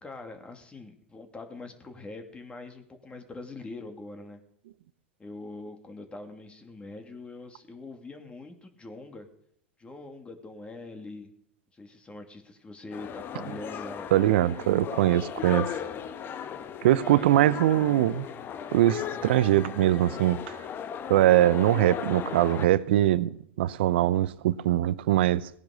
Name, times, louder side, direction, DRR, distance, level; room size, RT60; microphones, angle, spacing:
voice 1, 0.0-4.4 5.2-9.3 9.8-11.3 11.7-14.3 17.0-18.0, left 2 dB, 15° left, 2.7 m, -43 dB
sound 1, 12.9-22.7, left 8 dB, 35° left, 1.5 m, -37 dB
voice 2, 14.1-15.7 16.8-18.3 18.7-20.6 21.1-25.5, right 13 dB, 60° right, 0.8 m, -22 dB
19.0 x 10.5 x 6.6 m
figure-of-eight pair, 85°, 6 cm